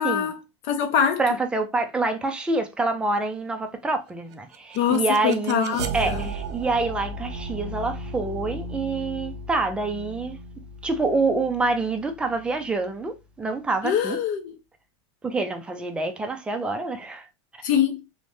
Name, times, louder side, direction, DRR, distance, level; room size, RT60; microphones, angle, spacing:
voice 1, 0.0-1.2 4.7-6.3 13.8-14.5 17.6-18.0, left 8 dB, 50° left, 0.6 m, -24 dB
voice 2, 1.2-10.4 10.8-14.2 15.2-17.3, right 3 dB, 5° right, 0.4 m, -26 dB
sound 1, 4.3-13.3, right 3 dB, 60° right, 0.6 m, -36 dB
3.1 x 2.1 x 2.6 m
supercardioid pair, 145°, 16 cm